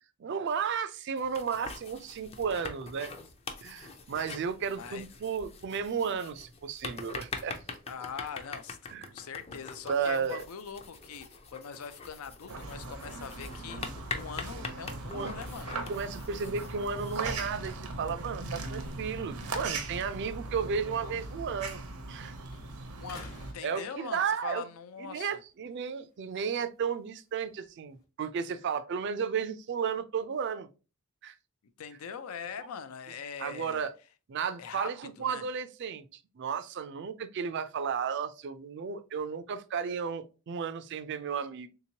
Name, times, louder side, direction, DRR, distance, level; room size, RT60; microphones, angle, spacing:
voice 1, 0.2-3.1 3.6-7.6 8.9-9.2 9.8-10.4 15.1-15.3 15.9-21.8 22.1-22.3 23.6-24.7 25.0-30.7 31.2-31.4 33.4-33.9 34.3-41.7, right 6 dB, 55° right, 0.3 m, -33 dB
sound 1, 1.2-17.5, left 4 dB, 30° left, 0.4 m, -44 dB
voice 2, 4.7-5.1 7.9-15.8 23.0-25.4 31.8-33.9 34.6-34.9 35.2-35.4, left 6 dB, 85° left, 0.5 m, -42 dB
sound 2, 12.5-23.5, right 3 dB, 85° right, 0.7 m, -39 dB
sound 3, 16.6-22.2 22.5-24.5 25.0-28.0, left 3 dB, 45° left, 1.0 m, -58 dB
3.5 x 2.9 x 2.7 m
head